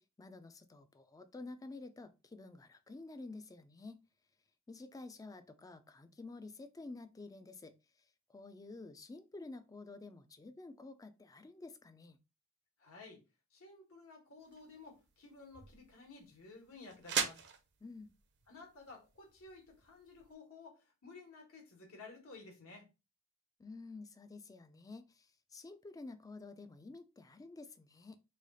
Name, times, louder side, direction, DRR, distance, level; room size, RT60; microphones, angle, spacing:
voice 1, 0.0-4.0 4.7-7.7 8.3-12.2 17.8-18.1 23.6-28.2, left 3 dB, 15° left, 0.3 m, -50 dB
voice 2, 12.8-13.2 13.5-17.4 18.5-22.9, left 3 dB, 70° left, 1.3 m, -54 dB
sound 1, 14.4-20.3, right 7 dB, 50° right, 0.5 m, -43 dB
3.2 x 2.3 x 4.0 m
head